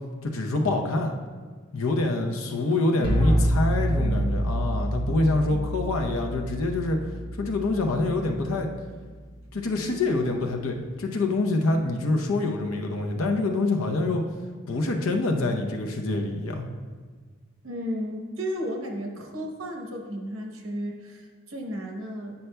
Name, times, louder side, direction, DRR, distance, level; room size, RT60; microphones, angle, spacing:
voice 1, 0.2-1.1 1.7-7.0 7.4-8.7 9.5-14.2 14.7-16.6, left 2 dB, 90° left, 3 dB, 0.7 m, -26 dB
sound 1, 3.0-8.8, equal, 25° left, 1.2 m, -27 dB
voice 2, 3.0-3.5 4.0-4.3 5.3-5.7 17.6-22.3, equal, 80° right, 2 dB, 0.9 m, -34 dB
9.2 x 5.5 x 2.2 m, 1.5 s
head